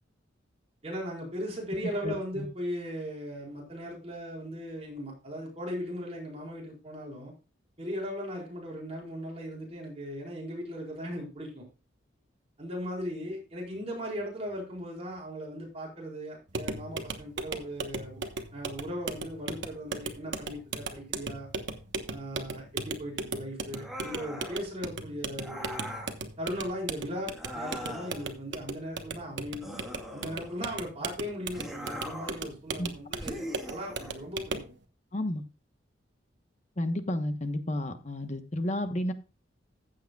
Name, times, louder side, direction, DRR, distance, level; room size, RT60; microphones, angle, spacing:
voice 1, 0.8-7.3 7.8-11.6 12.6-18.2 18.5-21.5 22.1-25.9 26.4-29.7 30.1-34.6, equal, 35° right, 4.8 m, -38 dB
voice 2, 2.0-2.4 32.8-32.9 35.1-35.4 36.8-39.1, left 1 dB, 40° left, 1.1 m, -31 dB
sound 1, 16.5-34.7, right 4 dB, 70° right, 1.2 m, -38 dB
sound 2, 23.7-24.7 25.4-26.2 27.3-28.3 29.6-30.7 31.5-32.5 33.2-34.2, equal, ahead, 1.9 m, -41 dB
15.5 x 7.8 x 2.3 m
head